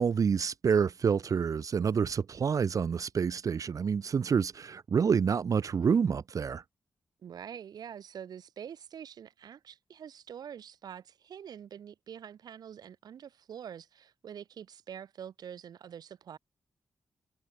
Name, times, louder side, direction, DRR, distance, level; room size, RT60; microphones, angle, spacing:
voice 1, 0.0-6.6, right 6 dB, 55° right, 0.9 m, -28 dB
voice 2, 7.2-16.4, right 8 dB, 85° right, 2.9 m, -45 dB
cardioid pair, 80°, 7 cm